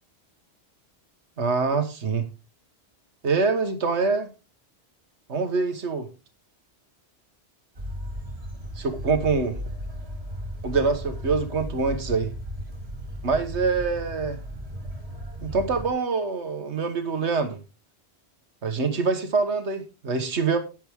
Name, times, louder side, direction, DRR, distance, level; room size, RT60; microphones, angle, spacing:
voice 1, 1.4-2.3 3.2-4.3 5.3-6.1 8.8-9.6 10.6-12.3 13.2-14.4 15.4-17.6 18.6-20.6, right 4 dB, 90° right, 7 dB, 1.7 m, -25 dB
sound 1, 7.7-15.9, equal, 70° right, 3.1 m, -35 dB
11.0 x 10.0 x 3.6 m, 0.29 s
omnidirectional pair, 1.1 m